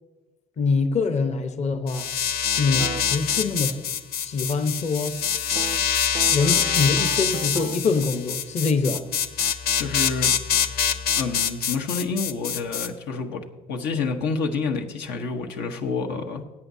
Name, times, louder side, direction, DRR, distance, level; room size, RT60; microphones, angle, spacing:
voice 1, 0.6-2.1 2.6-3.9 4.2-5.2 6.3-9.1, left 4 dB, 40° left, 8 dB, 0.9 m, -24 dB
sound 1, 1.9-12.9, left 8 dB, 65° left, 0.7 m, -25 dB
sound 2, 2.8-3.0 5.6-8.0, right 6 dB, 30° right, 0.3 m, -36 dB
voice 2, 9.8-10.3 11.2-16.4, left 4 dB, 80° left, 5 dB, 1.1 m, -28 dB
16.5 x 8.5 x 2.7 m, 1.2 s
cardioid pair, 110°, 17 cm